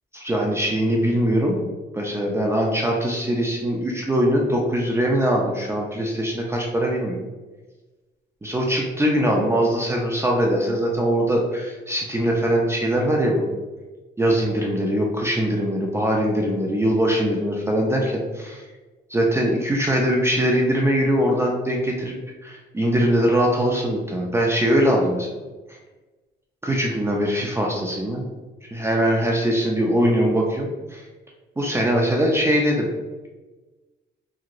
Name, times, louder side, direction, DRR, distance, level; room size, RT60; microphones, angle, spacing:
voice 1, 0.1-1.6 1.9-7.2 8.4-13.5 14.2-18.6 19.1-22.1 22.4-25.3 26.6-28.2 28.7-31.0 31.6-32.9, equal, 15° right, -1 dB, 0.4 m, -22 dB
2.9 x 2.7 x 2.5 m, 1.2 s
cardioid pair, 90°, 20 cm